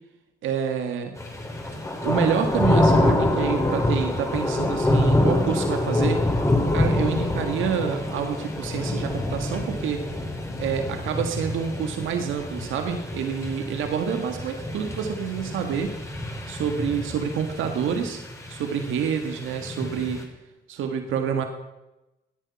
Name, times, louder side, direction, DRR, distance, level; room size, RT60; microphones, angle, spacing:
voice 1, 0.4-1.2 2.0-6.2 6.7-10.2 10.6-15.9 16.5-18.2 18.5-20.3 20.7-21.5, right 7 dB, 80° right, 5 dB, 1.7 m, -28 dB
sound 1, 1.2-20.2, left 1 dB, 15° left, 3.4 m, -26 dB
17.5 x 10.5 x 5.8 m, 0.98 s
cardioid pair, 90°, 20 cm